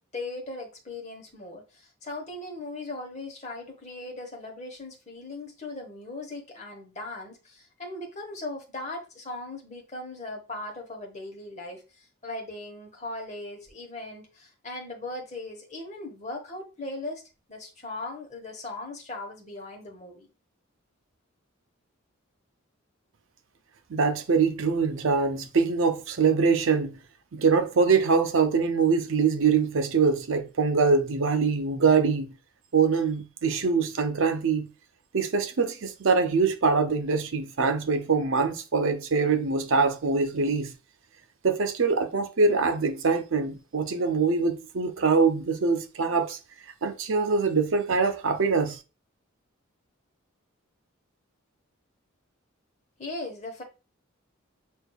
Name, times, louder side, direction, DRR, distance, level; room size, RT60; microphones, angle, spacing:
voice 1, 0.0-17.2 17.5-20.3 53.0-53.6, left 2 dB, 35° left, 1.0 m, -38 dB
voice 2, 23.9-27.0 27.3-32.3 32.7-34.7 35.1-40.7 41.4-46.4 46.8-48.8, right 5 dB, 65° right, 0.5 m, -24 dB
6.3 x 2.6 x 2.2 m
head